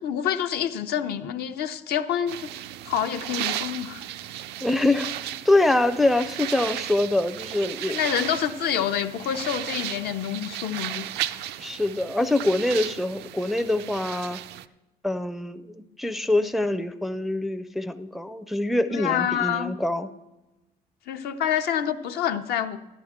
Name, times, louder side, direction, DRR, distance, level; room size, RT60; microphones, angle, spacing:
voice 1, 0.0-2.5 2.9-4.0 7.9-11.1 18.9-19.7 21.1-22.8, left 9 dB, 70° left, 8 dB, 0.7 m, -27 dB
sound 1, 2.3-14.7, right 12 dB, 80° right, 0.4 m, -35 dB
voice 2, 4.6-5.2 5.5-8.0 11.6-14.4 15.0-20.1, left 2 dB, ahead, 7 dB, 0.4 m, -24 dB
13.0 x 11.5 x 3.6 m, 1.0 s
cardioid pair, 110°, 17 cm